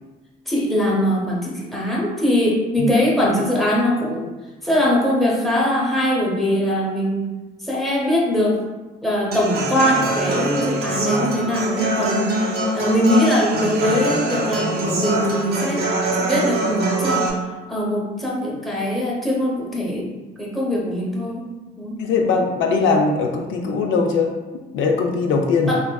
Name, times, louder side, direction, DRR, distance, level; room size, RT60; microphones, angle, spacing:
voice 1, 0.5-4.3 4.6-7.3 7.6-8.6 9.0-15.8 16.1-17.3 17.7-20.1 20.4-21.5 21.8-21.9 25.7-25.8, equal, ahead, -5 dB, 0.8 m, -21 dB
Human voice / Acoustic guitar, 9.3-17.3, right 1 dB, 55° right, 0.5 m, -23 dB
voice 2, 22.0-24.3 24.7-25.7, left 4 dB, 75° left, 2 dB, 0.4 m, -20 dB
3.1 x 2.4 x 2.2 m, 1.2 s
cardioid pair, 90°, 20 cm